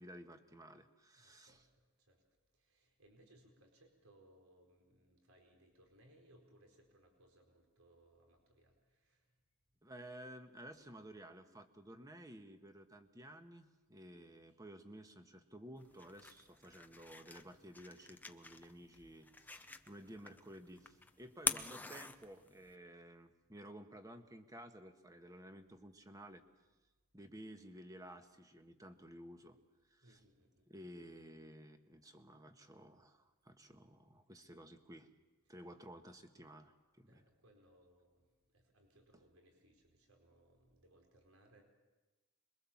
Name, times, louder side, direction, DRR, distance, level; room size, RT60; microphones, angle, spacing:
voice 1, 0.0-1.7 9.8-26.4 27.1-29.6 29.9-30.2 30.7-35.1 35.5-37.2, right 1 dB, 15° right, 6 dB, 1.5 m, -54 dB
voice 2, 1.2-2.2 2.5-9.3 14.5-14.6 20.1-20.2 30.0-30.7 37.1-38.3 38.5-41.6, right 1 dB, 70° right, 2 dB, 4.6 m, -67 dB
sound 1, 15.8-22.7, left 3 dB, 10° left, 0.8 m, -45 dB
26.5 x 22.5 x 7.3 m, 1.1 s
head